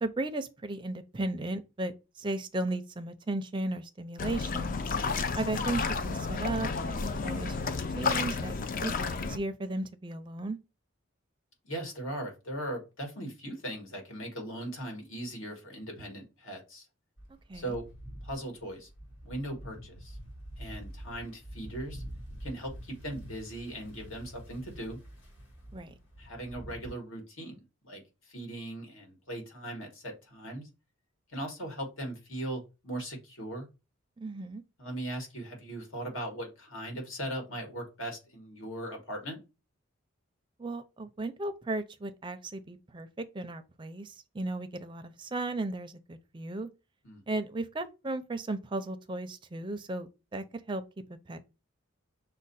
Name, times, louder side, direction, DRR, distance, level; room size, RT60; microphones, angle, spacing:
voice 1, 0.0-1.9 2.2-4.8 5.3-6.9 7.2-8.5 8.8-10.6 17.5-17.8 25.7-25.9 34.2-34.6 40.6-46.7 47.3-50.8 51.1-51.4, right 2 dB, 25° right, 0.4 m, -35 dB
sound 1, 4.2-9.4, left 4 dB, 40° left, 0.4 m, -31 dB
voice 2, 11.6-16.9 17.5-17.8 18.2-18.9 19.2-20.2 20.6-22.0 22.4-25.0 26.2-27.6 27.8-30.7 31.3-33.7 34.8-39.4 47.0-47.2, right 1 dB, 75° left, 1.6 m, -39 dB
sound 2, 17.2-26.9, equal, 55° left, 1.7 m, -46 dB
6.2 x 2.1 x 4.1 m
head